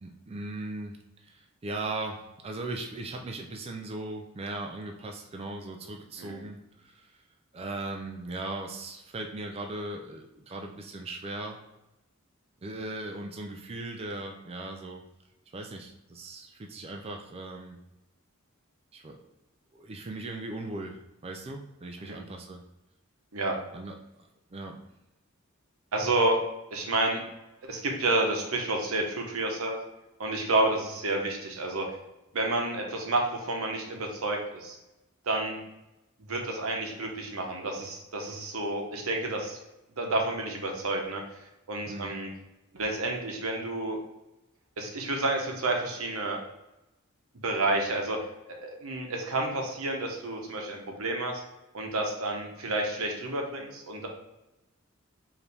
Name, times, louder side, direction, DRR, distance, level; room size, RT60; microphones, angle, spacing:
voice 1, 0.0-7.1 7.5-11.6 12.6-15.0 15.5-17.8 18.9-19.2 19.7-22.6 23.7-24.8 41.9-42.1, right 2 dB, 30° right, 2 dB, 0.4 m, -38 dB
voice 2, 25.9-26.4 26.7-27.2 27.6-29.8 30.2-31.9 32.3-34.7 35.3-35.6 36.3-39.6 40.0-41.2 41.7-42.3 42.7-44.0 44.8-46.4 47.4-48.2 48.5-51.4 51.7-54.1, right 2 dB, 90° right, 1 dB, 0.9 m, -30 dB
4.8 x 2.7 x 3.3 m, 0.95 s
head